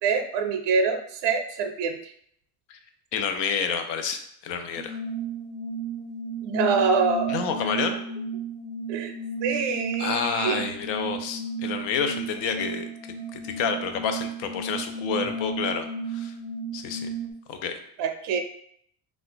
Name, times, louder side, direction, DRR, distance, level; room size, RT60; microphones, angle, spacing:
voice 1, 0.0-2.0 6.4-7.4 8.9-9.1 9.4-10.6 18.0-18.4, right 5 dB, 75° right, 6 dB, 0.5 m, -25 dB
voice 2, 3.1-5.0 7.3-8.0 10.0-16.3 16.7-17.1 17.5-17.8, left 6 dB, 85° left, 7 dB, 0.6 m, -29 dB
sound 1, 4.8-17.3, right 4 dB, 25° left, 0.8 m, -33 dB
2.4 x 2.4 x 3.8 m, 0.67 s
cardioid pair, 170°, 42 cm